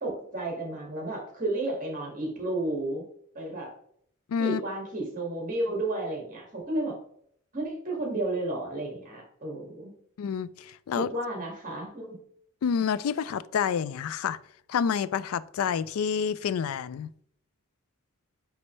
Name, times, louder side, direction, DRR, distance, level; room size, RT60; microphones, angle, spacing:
voice 1, 0.0-3.0 3.3-3.7 4.4-7.0 7.5-9.9 10.9-12.2, right 2 dB, 40° right, 2.0 m, -32 dB
voice 2, 4.3-4.6 10.2-11.1 12.6-14.4 14.7-17.1, left 7 dB, 70° left, 0.3 m, -28 dB
9.4 x 3.2 x 3.2 m
head